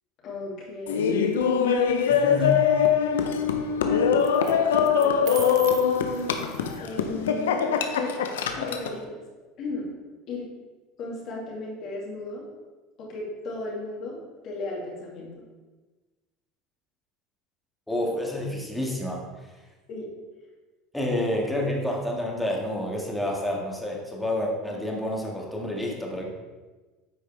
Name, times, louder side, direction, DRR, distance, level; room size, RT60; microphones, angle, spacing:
voice 1, 0.2-1.2 3.1-4.4 5.0-5.9 6.8-7.7 8.0-8.1 8.6-9.2 9.6-9.9 10.3-10.5 11.0-12.5 13.0-15.3 19.9-20.1, left 2 dB, 55° left, -3 dB, 2.4 m, -36 dB
Laughter, 0.9-9.0, left 7 dB, 90° left, 0.6 m, -23 dB
sound 1, 1.3-1.9 4.2-4.5 4.9-6.9, right 12 dB, 60° right, 0.5 m, -41 dB
voice 2, 2.1-2.7 17.9-19.2 20.9-26.2, left 1 dB, 5° left, -1 dB, 1.8 m, -29 dB
8.9 x 4.8 x 3.4 m, 1.2 s
hypercardioid pair, 90°, 0 cm